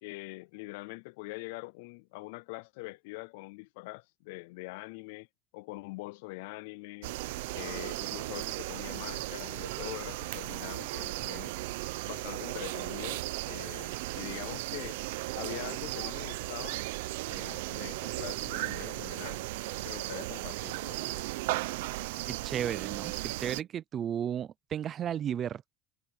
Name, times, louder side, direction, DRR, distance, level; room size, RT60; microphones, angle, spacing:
voice 1, 0.0-5.3 5.5-7.2 7.5-11.5 12.0-15.0 15.4-16.8 17.3-19.4 19.8-21.3, left 25 dB, 70° left, 0.3 m, -43 dB
sound 1, 7.0-23.6, right 19 dB, 80° right, 0.6 m, -36 dB
voice 2, 22.3-25.8, right 9 dB, 25° right, 0.4 m, -34 dB
cardioid pair, 170°, 0 cm